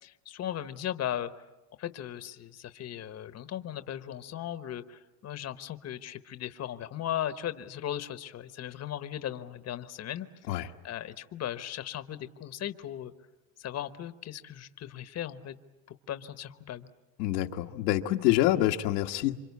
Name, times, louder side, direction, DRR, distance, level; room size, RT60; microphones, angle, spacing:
voice 1, 0.0-1.4 1.8-13.1 13.6-15.6 16.1-16.9, left 11 dB, 35° left, 11 dB, 1.2 m, -37 dB
voice 2, 17.2-19.3, left 14 dB, 85° left, 3 dB, 1.6 m, -26 dB
28.0 x 25.0 x 8.4 m, 1.1 s
supercardioid pair, 120°, 48 cm